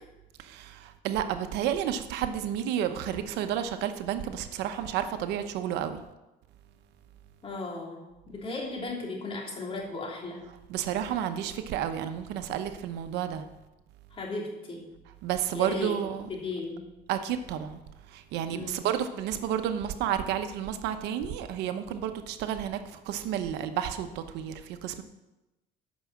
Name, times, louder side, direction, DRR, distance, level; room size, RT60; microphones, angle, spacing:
voice 1, 0.4-6.0 10.7-13.4 15.2-16.3 17.1-17.8 18.1-22.8 23.1-25.0, right 10 dB, 90° right, 9 dB, 0.8 m, -31 dB
voice 2, 7.4-10.4 14.1-14.9 15.5-16.0 16.3-16.8 18.5-18.8, left 3 dB, 30° left, -2 dB, 3.2 m, -36 dB
9.5 x 6.1 x 7.4 m, 0.99 s
cardioid pair, 110°, 17 cm